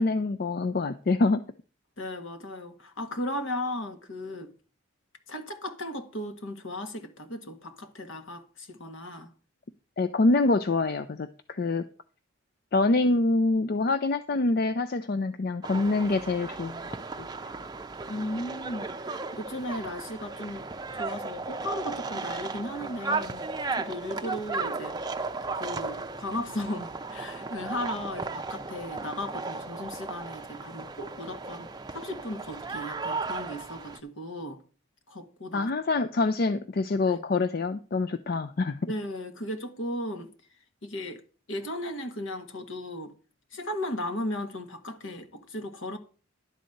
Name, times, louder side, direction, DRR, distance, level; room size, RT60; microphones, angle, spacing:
voice 1, 0.0-1.4 10.0-11.9 12.7-16.8 17.2-17.3 35.5-38.9, left 3 dB, 45° left, 0.4 m, -25 dB
voice 2, 2.0-4.5 5.3-9.3 18.1-20.6 20.9-23.4 23.7-25.0 25.5-34.6 35.1-35.7 37.0-37.2 38.9-40.3 40.8-41.2 41.5-43.1 43.5-46.0, left 1 dB, 70° left, 1.5 m, -36 dB
sound 1, 15.6-34.0, right 3 dB, 20° right, 0.5 m, -35 dB
11.5 x 4.1 x 7.7 m
head